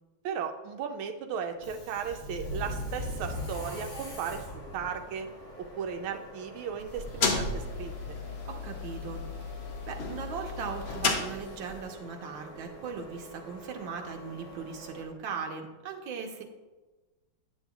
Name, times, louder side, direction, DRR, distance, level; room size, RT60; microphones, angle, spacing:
voice 1, 0.2-4.4 4.7-5.3 5.6-8.2, right 7 dB, 85° right, 5 dB, 1.5 m, -36 dB
Subway metro underground, 1.5-15.0, equal, 35° left, 1.9 m, -43 dB
sound 1, 6.8-11.9, left 4 dB, 75° left, 0.6 m, -33 dB
voice 2, 8.4-9.5 9.9-16.4, right 5 dB, 70° right, 3 dB, 1.5 m, -39 dB
9.2 x 7.2 x 2.3 m, 1.2 s
omnidirectional pair, 2.2 m